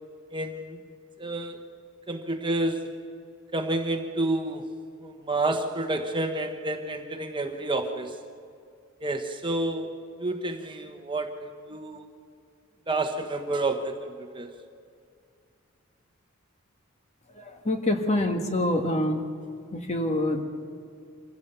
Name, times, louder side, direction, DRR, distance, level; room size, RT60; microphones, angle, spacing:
voice 1, 0.3-0.8 1.2-1.6 2.1-3.0 3.5-4.6 5.0-8.1 9.0-12.1 12.9-14.5, right 2 dB, 25° right, 5 dB, 1.2 m, -29 dB
voice 2, 17.3-19.3 19.7-20.4, left 1 dB, 30° left, 5 dB, 1.6 m, -26 dB
26.0 x 16.0 x 6.9 m, 2.3 s
head